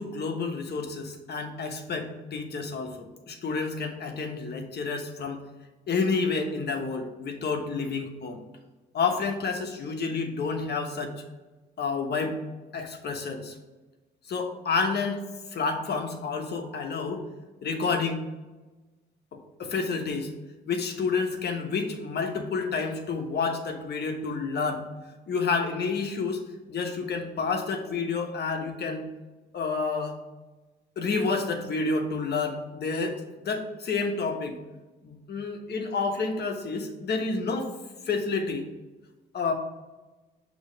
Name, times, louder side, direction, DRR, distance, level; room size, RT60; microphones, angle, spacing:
voice 1, 0.0-3.0 3.3-5.4 5.9-8.4 8.9-11.1 11.8-12.4 12.7-13.5 14.3-15.2 15.5-17.2 17.6-18.2 19.6-20.3 20.7-24.9 25.3-26.4 26.7-29.0 29.5-30.2 31.0-34.5 35.0-37.7 38.1-38.7 39.3-39.5, left 4 dB, 60° left, 4 dB, 1.1 m, -29 dB
6.2 x 3.1 x 5.1 m, 1.2 s
cardioid pair, 70°, 19 cm